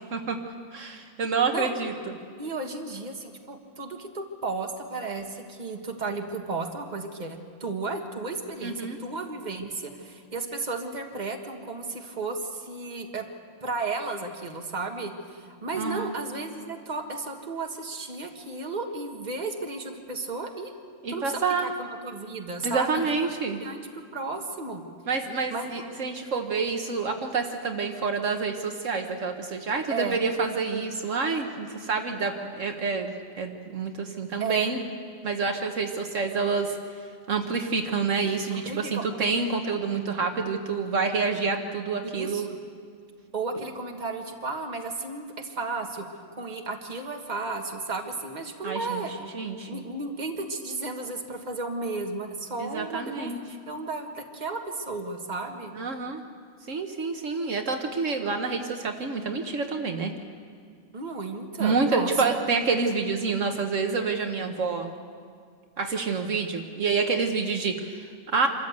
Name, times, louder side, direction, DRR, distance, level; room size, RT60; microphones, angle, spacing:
voice 1, 0.7-1.9 8.6-9.0 15.8-16.1 21.0-21.7 22.6-23.6 25.1-34.8 35.2-36.7 37.3-42.5 48.6-49.0 49.3-49.8 52.6-53.4 55.7-56.2 56.7-60.1 61.6-64.9 65.8-68.5, right 4 dB, 70° right, 4 dB, 1.5 m, -28 dB
voice 2, 2.4-13.2 13.6-20.7 21.1-23.3 23.6-23.9 24.1-24.8 25.5-25.7 29.9-30.2 34.4-34.7 38.5-39.0 42.1-42.6 43.3-46.1 46.4-49.1 49.7-53.3 53.7-55.7 60.9-62.1, right 3 dB, 35° right, 3 dB, 1.7 m, -33 dB
26.0 x 14.0 x 8.1 m, 2.1 s
omnidirectional pair, 1.4 m